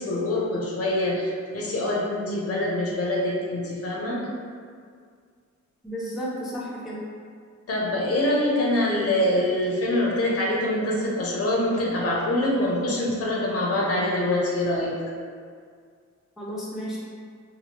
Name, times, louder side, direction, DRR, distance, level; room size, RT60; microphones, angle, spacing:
voice 1, 0.0-4.2 7.7-14.9, left 1 dB, 55° left, -4 dB, 0.6 m, -25 dB
voice 2, 5.8-7.0 16.4-17.0, equal, ahead, -6 dB, 0.4 m, -32 dB
2.9 x 2.4 x 2.8 m, 2.1 s
wide cardioid pair, 130°, 29 cm